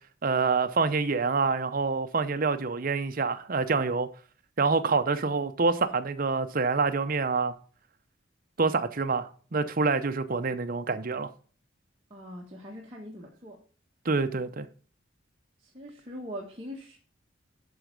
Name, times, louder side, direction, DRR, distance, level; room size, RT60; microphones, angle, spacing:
voice 1, 0.2-4.1 4.6-7.5 8.6-11.3 14.0-14.7, right 4 dB, 45° right, 0.7 m, -26 dB
voice 2, 12.1-13.6 15.7-17.0, equal, 30° right, 1.4 m, -41 dB
11.0 x 4.4 x 5.2 m
head